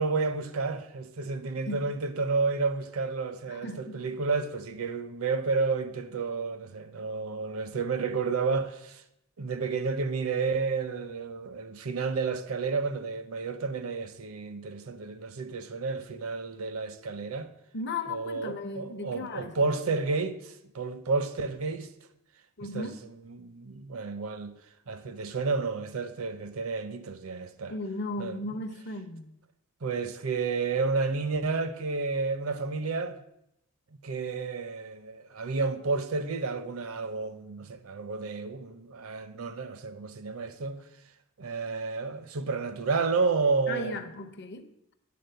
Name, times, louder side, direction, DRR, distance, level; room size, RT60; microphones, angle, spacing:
voice 1, 0.0-9.0 9.4-17.5 18.1-21.9 22.7-22.9 23.3-24.5 24.9-27.7 28.2-28.4 29.8-33.2 34.0-40.8 41.4-44.0, right 4 dB, 65° right, 0.6 m, -31 dB
voice 2, 3.5-4.0 17.7-19.7 22.6-23.0 27.7-29.3 43.7-44.7, left 2 dB, 50° left, 0.7 m, -36 dB
8.5 x 4.0 x 6.7 m
head